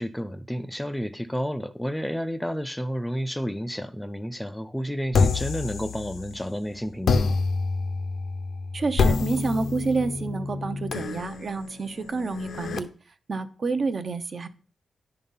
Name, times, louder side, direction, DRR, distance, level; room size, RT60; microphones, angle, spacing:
voice 1, 0.0-7.4, equal, 5° left, 0.4 m, -31 dB
sound 1, 5.1-6.5 7.0-12.8, left 4 dB, 65° left, 0.6 m, -27 dB
voice 2, 8.7-12.9 13.3-14.5, right 4 dB, 40° right, 0.6 m, -29 dB
10.5 x 3.9 x 5.5 m
wide cardioid pair, 145°, 0 cm